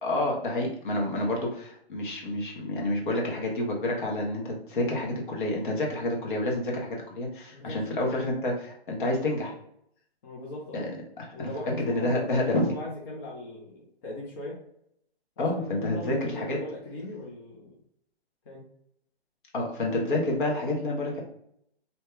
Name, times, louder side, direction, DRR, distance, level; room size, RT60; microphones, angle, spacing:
voice 1, 0.0-9.5 10.7-10.9 11.2-11.5 11.8-12.6 15.4-16.6 19.5-21.2, left 1 dB, 50° left, -1 dB, 0.9 m, -29 dB
voice 2, 7.5-8.5 10.2-10.8 11.3-14.6 15.4-17.7 18.5-18.6, left 1 dB, 25° left, -5 dB, 0.6 m, -39 dB
2.8 x 2.2 x 3.2 m, 0.72 s
hypercardioid pair, 145°, 32 cm